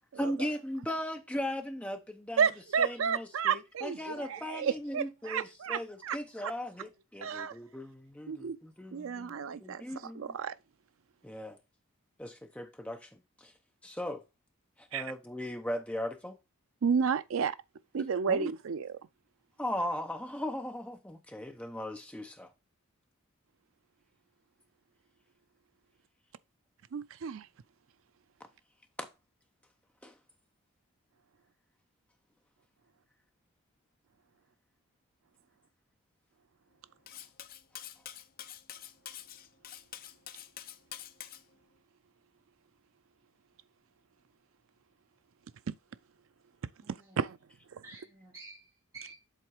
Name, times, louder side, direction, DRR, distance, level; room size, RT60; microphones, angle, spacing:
voice 1, 0.2-2.5 2.8-10.4 11.2-11.6 12.2-13.5 13.8-14.2 14.8-16.4 18.3-18.5 19.6-22.5 29.0-29.1 30.0-30.1, left 1 dB, 5° left, 0.8 m, -38 dB
voice 2, 2.4-6.5 7.2-7.5 8.3-8.6 8.9-10.6 14.9-15.0 16.8-17.6 17.9-19.0 26.9-27.5 46.9-47.4 47.7-47.8, right 6 dB, 65° right, 0.4 m, -32 dB
Cutlery silverware, 37.1-41.4, left 11 dB, 40° left, 0.5 m, -46 dB
voice 3, 46.8-47.3 47.8-49.1, right 3 dB, 15° right, 2.3 m, -51 dB
7.5 x 3.8 x 4.8 m
head